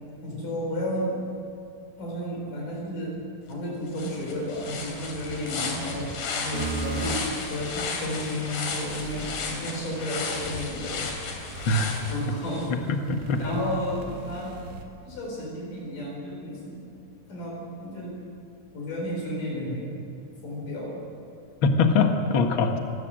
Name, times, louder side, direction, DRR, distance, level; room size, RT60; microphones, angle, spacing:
voice 1, 0.2-1.1 2.0-3.2 3.5-11.1 12.1-12.7 13.4-14.6 15.0-16.8 17.3-18.1 18.7-19.9 20.4-21.0, equal, 70° left, -2 dB, 5.9 m, -32 dB
sound 1, 3.5-3.6 3.9-12.7, left 4 dB, 85° left, 4.7 m, -34 dB
sound 2, 6.5-14.9, right 4 dB, 75° right, 3.7 m, -38 dB
voice 2, 11.7-12.0 12.9-13.4 21.6-22.8, left 3 dB, 45° left, 4 dB, 2.0 m, -22 dB
26.0 x 18.5 x 7.7 m, 2.6 s
omnidirectional pair, 4.0 m